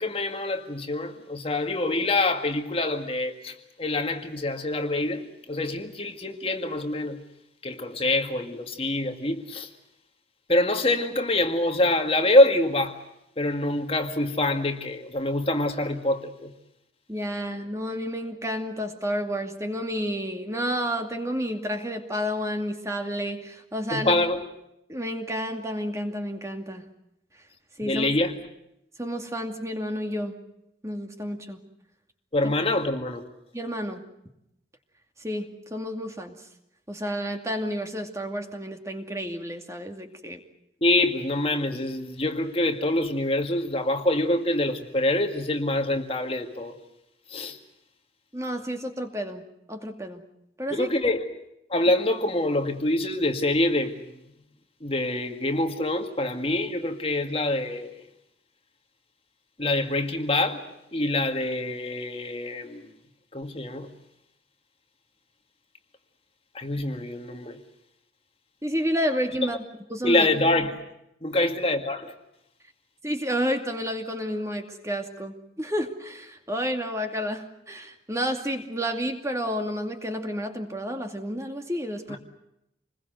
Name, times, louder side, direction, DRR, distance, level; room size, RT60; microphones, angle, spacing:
voice 1, 0.0-7.2 7.6-9.7 10.5-13.0 13.4-16.5 23.9-24.4 27.8-28.4 32.3-33.2 40.8-46.8 47.3-47.6 50.7-51.3 51.7-54.0 54.8-58.0 59.6-60.6 60.9-62.8 63.3-63.9 66.5-67.6 69.5-69.6 70.0-70.8 71.2-72.1 82.1-82.2, left 1 dB, 30° left, 1.9 m, -25 dB
voice 2, 17.1-24.1 24.9-26.8 27.8-28.1 29.0-30.4 30.8-31.6 32.4-32.5 33.5-34.0 35.2-36.4 36.9-40.4 48.3-49.4 49.7-50.2 50.6-50.9 68.6-69.6 69.9-70.3 73.0-82.2, equal, 15° right, 2.4 m, -30 dB
27.5 x 21.0 x 7.9 m
head